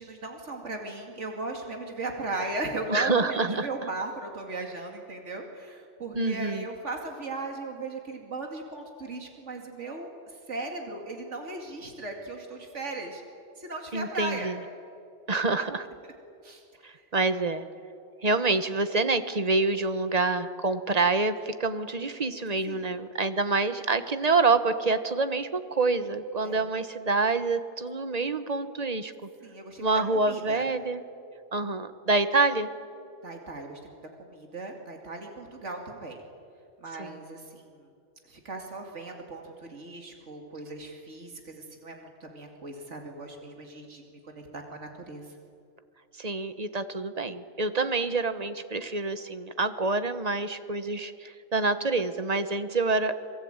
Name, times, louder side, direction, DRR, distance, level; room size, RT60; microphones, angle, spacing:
voice 1, 0.0-10.1 10.5-13.2 13.6-14.5 16.4-16.6 22.7-22.9 26.4-26.6 29.4-29.9 30.3-30.6 33.2-36.2 36.8-37.8 38.3-45.3, right 2 dB, 85° right, 2 dB, 2.7 m, -37 dB
voice 2, 2.9-3.7 6.1-6.7 13.9-14.6 15.3-15.9 16.8-17.6 18.2-29.3 29.8-31.0 31.5-32.7 37.0-37.2 46.2-53.2, right 3 dB, 35° right, 10 dB, 1.3 m, -27 dB
27.0 x 21.5 x 8.9 m, 2.5 s
omnidirectional pair, 1.2 m